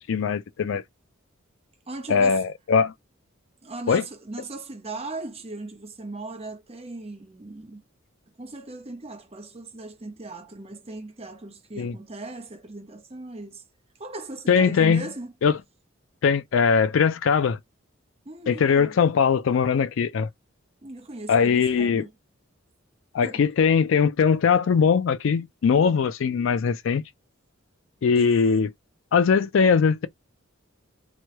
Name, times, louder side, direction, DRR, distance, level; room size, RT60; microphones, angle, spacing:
voice 1, 0.1-0.8 2.1-2.9 3.9-4.0 11.8-11.9 14.5-15.1 15.4-15.6 16.2-17.6 18.5-20.3 21.3-22.1 23.1-27.0 28.0-28.7 29.1-30.1, left 6 dB, 65° left, 0.4 m, -21 dB
voice 2, 1.9-2.4 3.6-7.8 8.4-13.6 14.0-15.3 18.3-19.0 20.8-22.1 23.2-23.4 28.1-28.3, right 2 dB, 30° right, 0.9 m, -38 dB
3.1 x 2.2 x 2.9 m
head